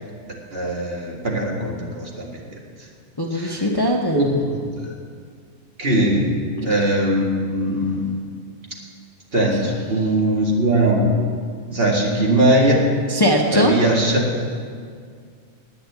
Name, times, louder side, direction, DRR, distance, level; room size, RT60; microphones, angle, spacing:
voice 1, 0.5-2.6 3.3-3.6 4.1-4.9 5.8-6.3 6.7-8.1 9.3-11.1 11.7-12.9 13.5-14.2, right 1 dB, 45° right, -1 dB, 2.2 m, -20 dB
voice 2, 3.2-4.4 6.6-6.8 13.1-13.7, equal, 20° left, 0 dB, 0.9 m, -20 dB
10.5 x 9.1 x 9.5 m, 2.1 s
omnidirectional pair, 1.4 m